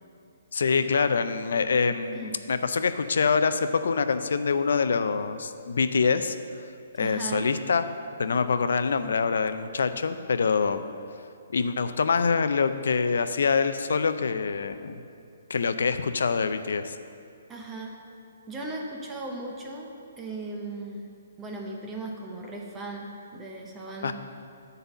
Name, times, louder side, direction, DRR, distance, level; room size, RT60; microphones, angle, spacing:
voice 1, 0.5-6.4 6.9-7.8 8.2-10.9 11.5-15.0 15.5-16.9 24.0-24.1, left 5 dB, 75° left, 11 dB, 0.5 m, -25 dB
voice 2, 7.0-7.5 17.5-17.9 18.5-19.9 20.2-21.1 21.4-24.1, right 2 dB, 10° right, 0 dB, 0.7 m, -37 dB
9.6 x 4.1 x 7.1 m, 2.5 s
hypercardioid pair, 160°, 0 cm